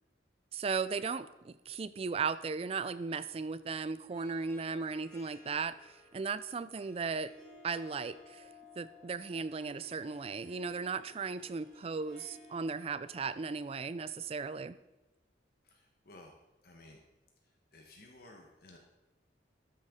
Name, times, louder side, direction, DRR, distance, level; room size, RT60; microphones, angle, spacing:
voice 1, 0.5-7.3 7.6-8.5 8.8-14.8, right 5 dB, 30° right, 14 dB, 0.3 m, -36 dB
Harp, 4.0-14.3, left 2 dB, 5° left, 3.3 m, -58 dB
voice 2, 15.6-16.4 16.6-17.0 17.7-18.8, left 2 dB, 55° left, 1 dB, 1.0 m, -55 dB
13.0 x 6.5 x 3.6 m, 1.0 s
head